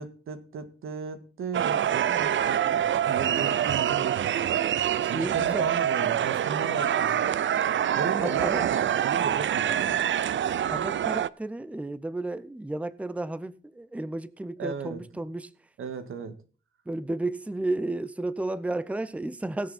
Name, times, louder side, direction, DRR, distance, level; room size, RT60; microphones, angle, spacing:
voice 1, 0.0-4.3 4.7-7.2 7.9-10.0 14.6-15.0 15.8-16.4, right 5 dB, 90° right, 1.8 m, -36 dB
sound 1, 1.5-11.3, right 10 dB, 65° right, 0.5 m, -26 dB
voice 2, 5.0-5.7 8.2-8.7 10.7-15.5 16.9-19.7, right 2 dB, 5° right, 0.6 m, -33 dB
19.5 x 6.9 x 4.3 m
wide cardioid pair, 115°, 21 cm